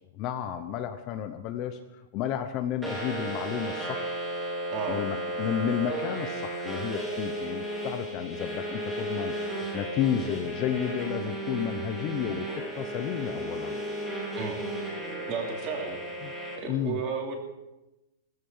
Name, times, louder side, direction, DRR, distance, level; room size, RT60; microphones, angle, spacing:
voice 1, 0.1-4.2 4.9-13.8 16.2-16.3 16.7-17.0, left 9 dB, 25° left, 8 dB, 0.8 m, -32 dB
sound 1, 2.8-16.6, right 1 dB, 5° right, 2.8 m, -34 dB
voice 2, 4.7-5.0 14.4-14.6 15.3-16.0 16.5-17.4, right 6 dB, 25° right, 2 dB, 2.8 m, -33 dB
16.5 x 14.5 x 5.6 m, 0.98 s
supercardioid pair, 175°, 0 cm